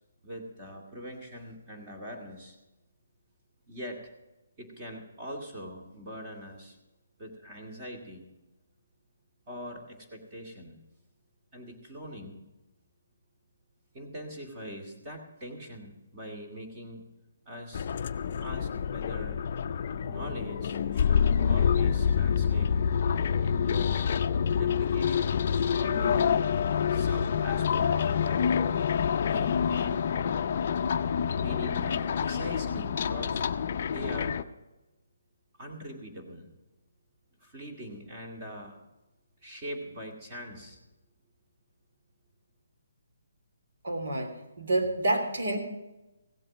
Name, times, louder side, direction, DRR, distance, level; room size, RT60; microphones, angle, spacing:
voice 1, 0.2-2.6 3.7-4.1 4.6-6.8 7.2-8.3 9.5-10.8 11.5-12.4 13.9-17.1 17.5-17.9 18.4-19.4 20.0-22.7 23.4-26.4 26.9-28.5 29.2-30.0 31.3-33.5 33.9-34.4 35.6-36.5 37.4-38.8 39.4-40.8, equal, 20° right, 1 dB, 2.2 m, -42 dB
sound 1, 17.7-34.4, left 7 dB, 35° left, 0.5 m, -27 dB
voice 2, 43.8-45.6, right 1 dB, 60° right, 4 dB, 3.1 m, -28 dB
16.5 x 7.7 x 6.1 m, 1.0 s
hypercardioid pair, 170°, 0 cm